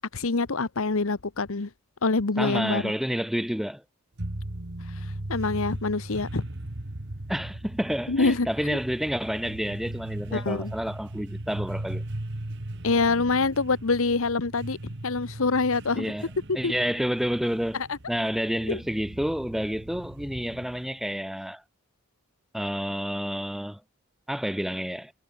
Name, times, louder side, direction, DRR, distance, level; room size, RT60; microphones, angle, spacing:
voice 1, 0.1-1.7 2.0-2.9 5.0-6.4 8.1-8.8 10.3-10.7 12.8-16.1 16.6-16.7 17.7-18.0 18.7-18.8, left 3 dB, 65° left, 1.0 m, -26 dB
voice 2, 2.4-3.8 7.3-12.0 16.0-16.3 16.5-17.8 18.1-21.6 22.5-23.8 24.3-25.1, equal, ahead, 0.4 m, -29 dB
sound 1, 4.2-21.0, right 1 dB, 50° right, 1.7 m, -38 dB
head